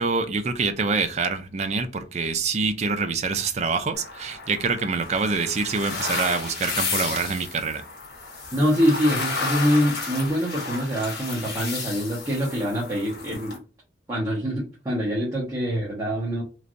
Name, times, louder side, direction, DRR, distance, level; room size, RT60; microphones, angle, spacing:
voice 1, 0.0-7.8, right 4 dB, 40° right, 0.4 m, -26 dB
sound 1, 3.9-13.6, left 4 dB, 55° left, 1.1 m, -32 dB
voice 2, 8.5-13.6 14.1-16.4, equal, 20° right, 0.9 m, -24 dB
3.2 x 2.6 x 2.5 m
head